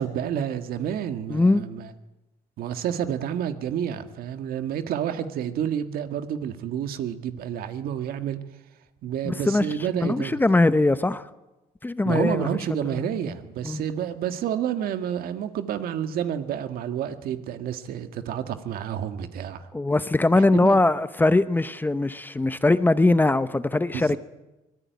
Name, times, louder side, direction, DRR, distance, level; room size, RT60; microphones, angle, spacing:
voice 1, 0.0-1.9 2.6-8.4 9.0-10.3 12.1-19.7 20.3-20.8 23.9-24.2, right 9 dB, 75° right, 1.8 m, -29 dB
voice 2, 1.3-1.6 9.2-9.7 10.0-11.2 11.8-12.5 12.8-13.1 13.6-13.8 19.7-24.2, left 2 dB, 10° left, 0.8 m, -21 dB
24.5 x 19.5 x 9.4 m
cardioid pair, 120°, 15 cm